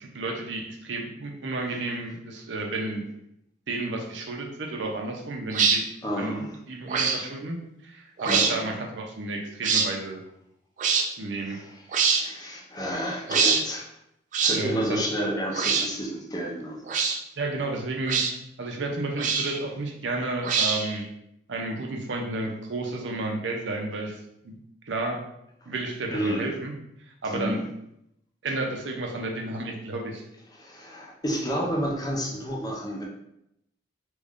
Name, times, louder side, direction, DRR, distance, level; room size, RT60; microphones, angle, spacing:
voice 1, 0.0-3.0 3.7-5.9 6.2-6.4 6.7-7.6 7.8-10.2 11.2-11.6 13.3-13.4 14.5-15.0 17.4-18.2 18.6-21.0 21.5-24.2 24.4-24.6 24.9-25.2 25.7-26.7 27.2-27.6 28.4-30.2, right 2 dB, 80° right, 1 dB, 0.6 m, -31 dB
sound 1, 5.5-5.8 6.9-7.2 8.2-8.5 9.6-9.9 10.8-11.1 11.9-12.2 13.3-13.6 14.3-14.6 15.5-15.9 16.9-17.2 18.1-18.3 19.2-19.6 20.4-21.0, right 5 dB, 45° right, 0.4 m, -23 dB
voice 2, 6.0-6.5 8.2-8.6 11.5-13.9 14.4-16.8 26.1-26.5 27.3-27.6 30.5-33.0, equal, 20° left, -1 dB, 0.6 m, -30 dB
3.0 x 2.5 x 3.5 m, 0.81 s
head